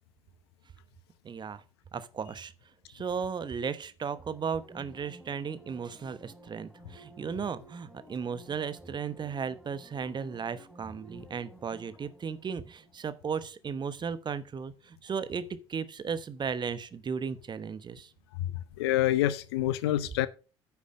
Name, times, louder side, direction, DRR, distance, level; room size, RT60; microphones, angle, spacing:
voice 1, 1.2-1.6 1.9-2.5 2.9-18.1, right 6 dB, 35° right, 1.0 m, -35 dB
sound 1, 4.1-13.5 13.8-13.9, right 1 dB, ahead, 3.2 m, -53 dB
voice 2, 18.8-20.3, left 13 dB, 70° left, 0.6 m, -26 dB
9.4 x 7.0 x 5.1 m
figure-of-eight pair, 50°, 14 cm